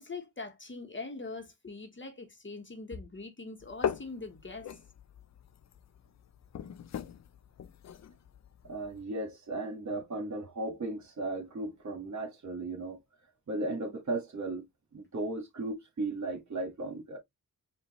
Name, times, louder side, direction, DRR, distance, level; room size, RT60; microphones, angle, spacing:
voice 1, 0.0-4.7, left 3 dB, 35° left, 1.3 m, -42 dB
sound 1, 3.6-9.0, left 8 dB, 55° left, 0.5 m, -40 dB
voice 2, 8.6-13.0 13.5-14.6 14.9-17.2, right 2 dB, 55° right, 1.6 m, -36 dB
5.0 x 2.6 x 3.0 m
cardioid pair, 50°, 34 cm